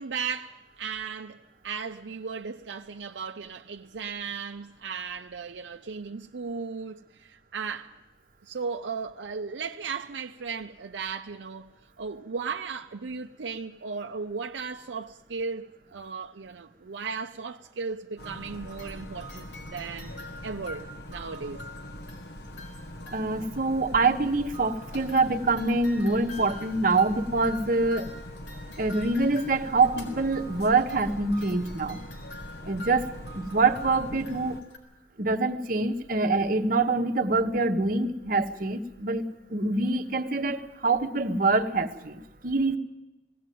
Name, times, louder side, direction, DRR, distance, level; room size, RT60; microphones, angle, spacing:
voice 1, 0.0-7.9 8.4-11.7 12.0-20.1 20.4-21.6, right 5 dB, 80° right, 0.6 m, -36 dB
sound 1, 18.2-23.6 24.5-34.8, left 1 dB, 90° left, 4.6 m, -46 dB
sound 2, 18.2-34.6, equal, 60° left, 1.0 m, -42 dB
voice 2, 23.1-28.1 28.8-32.0 32.7-34.6 35.2-39.2 39.5-42.8, right 3 dB, 50° right, 1.1 m, -25 dB
19.5 x 16.5 x 9.2 m
head